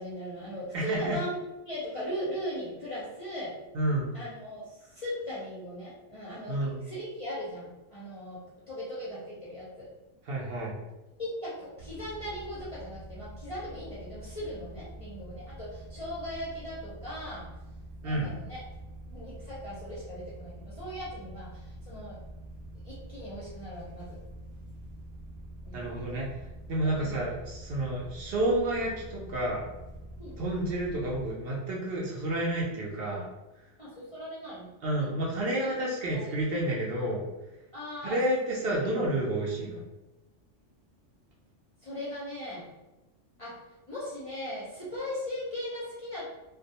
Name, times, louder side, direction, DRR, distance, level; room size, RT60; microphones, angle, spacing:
voice 1, 0.0-1.3 1.7-3.5 4.1-9.9 11.2-17.5 18.0-18.6 19.0-22.2 22.8-24.2 25.6-25.9 26.8-27.2 30.2-30.4 33.8-34.7 35.0-35.1 35.6-35.8 36.1-36.5 37.7-38.2 38.7-38.9 41.8-42.7 43.4-43.6 43.9-46.3, left 1 dB, 40° left, -8 dB, 0.5 m, -39 dB
voice 2, 0.7-1.2 3.7-4.1 6.5-6.8 10.3-10.8 18.0-18.3 25.7-26.3 26.7-29.7 30.4-33.3 34.8-37.3 38.0-39.8, right 1 dB, 60° right, -3 dB, 0.7 m, -30 dB
sound 1, 11.8-31.3, right 1 dB, 90° right, 0.3 m, -45 dB
2.2 x 2.1 x 2.7 m, 1.0 s
omnidirectional pair, 1.3 m